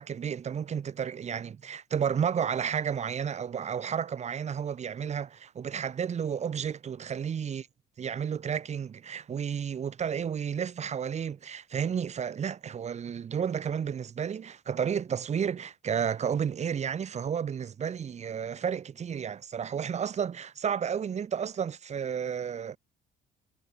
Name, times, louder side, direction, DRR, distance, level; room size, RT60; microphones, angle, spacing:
voice 1, 0.0-7.7 8.0-22.8, right 7 dB, 40° right, 3.3 m, -32 dB
cardioid pair, 110°, 17 cm